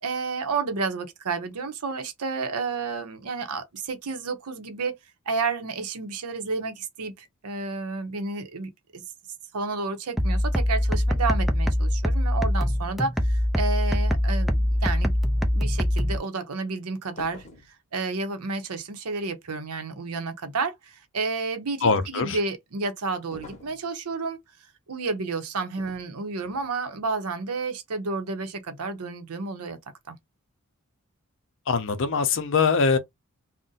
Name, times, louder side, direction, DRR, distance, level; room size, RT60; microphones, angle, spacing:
voice 1, 0.0-4.9 5.3-9.0 9.5-15.1 15.5-17.4 17.9-24.4 24.9-29.8 30.1-30.2, right 4 dB, 85° right, 0.7 m, -31 dB
sound 1, 10.2-16.2, equal, ahead, 0.4 m, -23 dB
sound 2, 17.2-17.7 23.3-23.8 25.8-26.1 26.4-26.7, left 2 dB, 35° left, 0.9 m, -45 dB
voice 2, 21.8-22.4 31.7-33.0, left 5 dB, 60° left, 0.5 m, -22 dB
2.6 x 2.1 x 3.9 m
head